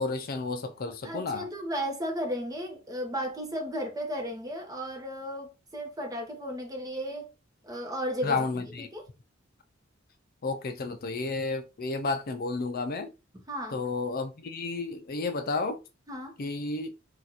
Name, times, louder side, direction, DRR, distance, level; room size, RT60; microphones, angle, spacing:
voice 1, 0.0-1.5 8.2-8.9 10.4-13.1 13.7-15.8 16.4-16.9, left 3 dB, 50° left, 0.5 m, -31 dB
voice 2, 1.0-7.3 7.6-9.1 13.5-13.8 16.1-16.3, equal, 20° right, 0.9 m, -34 dB
2.9 x 2.4 x 4.0 m
head